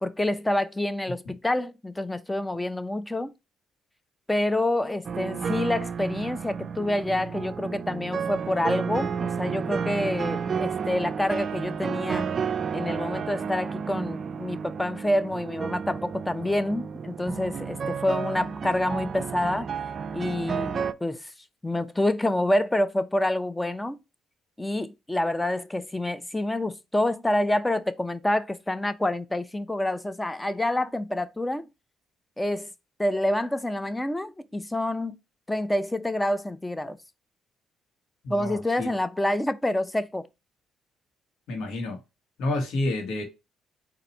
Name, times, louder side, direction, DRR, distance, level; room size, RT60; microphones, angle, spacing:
voice 1, 0.0-3.3 4.3-12.3 12.7-19.7 20.1-21.3 21.6-24.0 24.6-31.7 32.4-32.7 33.0-35.2 35.5-37.0 38.3-40.3, left 1 dB, 10° left, 0.5 m, -27 dB
sound 1, 5.0-20.9, right 6 dB, 45° right, 0.4 m, -31 dB
voice 2, 38.2-39.0 41.5-42.0 42.4-43.2, left 2 dB, 75° left, 1.3 m, -29 dB
4.1 x 2.6 x 4.2 m
cardioid pair, 80°, 0 cm